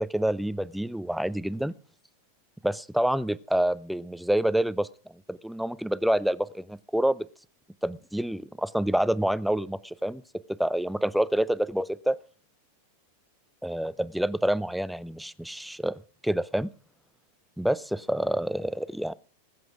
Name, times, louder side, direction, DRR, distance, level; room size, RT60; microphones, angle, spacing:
voice 1, 0.0-1.7 2.6-4.9 5.3-7.3 7.8-10.2 10.6-12.2 13.6-16.7 17.6-19.1, right 1 dB, ahead, 16 dB, 0.6 m, -27 dB
20.0 x 7.9 x 4.9 m, 0.43 s
figure-of-eight pair, 90°, 0 cm